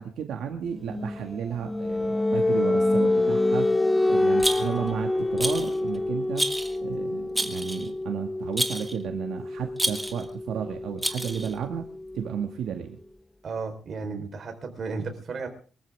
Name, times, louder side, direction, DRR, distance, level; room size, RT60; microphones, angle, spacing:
voice 1, 0.0-3.7 4.1-6.5 6.8-11.8 12.1-13.0, right 8 dB, 80° right, 3 dB, 2.1 m, -33 dB
sound 1, 0.8-12.4, left 2 dB, 10° left, 0.7 m, -27 dB
Rattle, 4.4-4.9 5.4-5.8 6.4-6.8 7.4-7.9 8.6-9.0 9.8-10.2 11.0-11.5, right 1 dB, 5° right, 1.6 m, -29 dB
voice 2, 13.4-15.5, right 4 dB, 45° right, 4 dB, 4.5 m, -34 dB
24.0 x 14.0 x 3.7 m, 0.39 s
cardioid pair, 140°, 0 cm